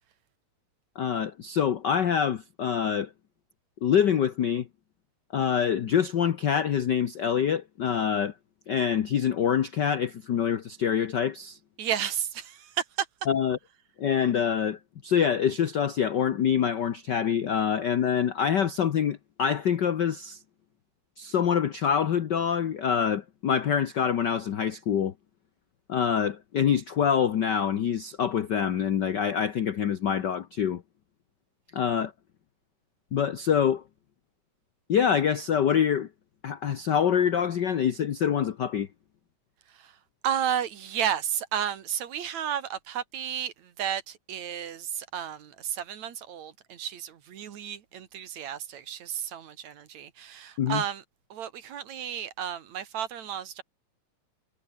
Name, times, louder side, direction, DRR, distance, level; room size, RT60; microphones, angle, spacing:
voice 1, 0.9-3.1 3.8-4.7 5.3-8.3 8.7-11.6 13.3-13.6 14.0-20.4 21.2-25.1 25.9-30.8 31.7-32.1 33.1-33.8 34.9-36.1 36.4-38.9 50.6-50.8, left 8 dB, 90° left, 0.9 m, -25 dB
voice 2, 11.8-12.7 40.2-51.0 51.3-53.6, right 9 dB, 65° right, 3.1 m, -32 dB
omnidirectional pair, 3.4 m